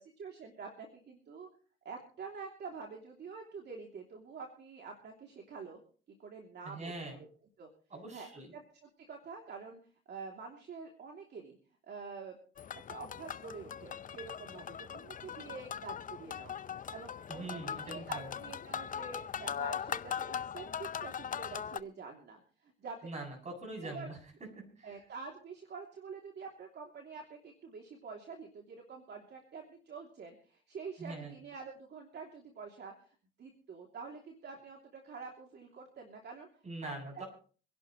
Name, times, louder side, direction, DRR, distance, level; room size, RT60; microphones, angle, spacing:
voice 1, 0.0-1.5 1.8-5.8 6.1-7.3 7.6-7.7 8.1-8.3 8.5-8.6 9.1-9.8 10.1-11.6 11.8-12.4 12.9-16.6 16.9-23.0 23.8-24.1 24.8-36.5 36.8-36.9, right 5 dB, 60° right, 1 dB, 3.0 m, -47 dB
voice 2, 6.6-7.2 7.9-8.5 17.3-18.3 23.0-24.2 24.8-25.0 31.0-31.4 36.6-37.2, right 2 dB, 35° right, 2 dB, 7.8 m, -43 dB
sound 1, 12.6-21.8, left 8 dB, 40° left, 0.6 m, -40 dB
26.5 x 11.5 x 3.2 m, 0.41 s
cardioid pair, 90°, 20 cm